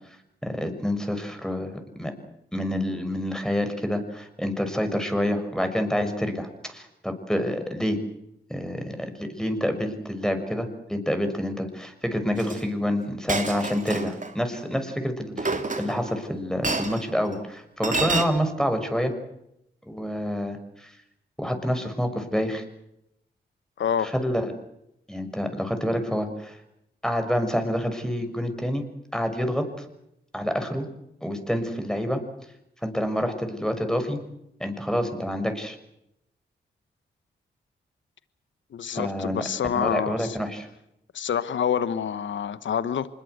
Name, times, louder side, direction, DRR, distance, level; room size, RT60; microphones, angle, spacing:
voice 1, 0.4-1.7 2.0-2.1 2.5-8.0 8.5-19.1 19.9-20.9 21.4-22.6 24.0-24.5 25.1-26.6 27.0-28.8 29.1-29.8 30.3-30.9 31.2-32.2 32.8-34.2 34.6-35.8 38.9-39.4 39.7-40.7, equal, 5° left, 7 dB, 6.4 m, -27 dB
Chink clink, 12.4-12.6 13.3-14.3 15.4-16.1 16.6-17.0 17.8-18.2, right 3 dB, 40° right, 3.5 m, -28 dB
voice 2, 23.8-24.1 38.7-40.4 41.1-43.1, left 8 dB, 75° left, 14 dB, 1.1 m, -27 dB
25.5 x 21.5 x 8.1 m, 0.81 s
supercardioid pair, 45°, 20 cm